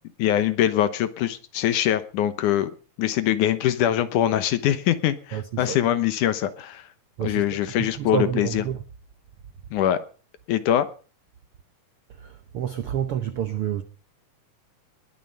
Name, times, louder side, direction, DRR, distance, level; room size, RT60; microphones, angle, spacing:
voice 1, 0.2-2.7 3.0-6.9 7.2-8.6 9.7-10.0 10.5-10.9, left 11 dB, 70° left, 2.4 m, -23 dB
voice 2, 5.3-5.8 7.2-7.4 7.8-8.8 12.2-13.8, right 9 dB, 75° right, 1.3 m, -28 dB
20.0 x 11.0 x 5.6 m
omnidirectional pair, 3.9 m